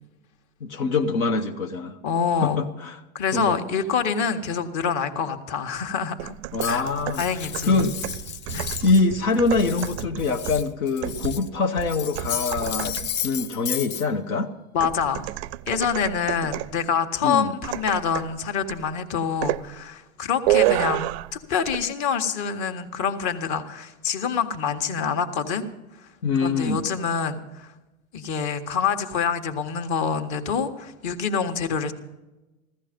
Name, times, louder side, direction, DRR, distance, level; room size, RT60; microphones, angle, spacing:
voice 1, 0.6-2.0 2.4-3.0 3.3-3.6 6.5-8.0 8.5-13.0 13.2-14.5 17.2-17.5 26.2-26.8, left 3 dB, 80° left, 3 dB, 1.1 m, -24 dB
voice 2, 2.0-2.6 3.1-6.3 6.6-6.8 7.2-7.9 8.5-8.6 14.7-15.3 15.7-25.6 26.0-26.1 26.4-27.7 28.1-31.9, left 6 dB, 45° left, 7 dB, 1.5 m, -26 dB
sound 1, 6.2-13.3 14.8-16.8 17.6-18.4 18.7-18.9 19.4-19.7 20.5-21.4 21.7-21.8, right 17 dB, 50° right, 0.4 m, -29 dB
Cutlery silverware, 6.6-9.1 9.3-11.5 11.8-14.0, left 9 dB, 30° left, 0.5 m, -33 dB
15.5 x 13.5 x 5.2 m, 1.0 s
hypercardioid pair, 95°, 41 cm